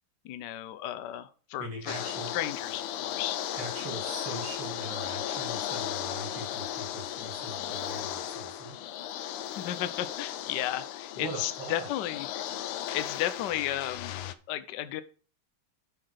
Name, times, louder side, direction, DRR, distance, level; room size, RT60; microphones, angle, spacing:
voice 1, 0.2-3.4 9.2-14.2 14.5-15.0, left 12 dB, 70° left, 12 dB, 1.1 m, -34 dB
voice 2, 1.6-2.3 3.5-8.8 11.2-11.9, right 2 dB, 70° right, 2 dB, 3.2 m, -41 dB
sound 1, 1.9-14.3, left 11 dB, 90° left, 1.6 m, -36 dB
10.5 x 3.9 x 6.5 m, 0.39 s
omnidirectional pair, 2.4 m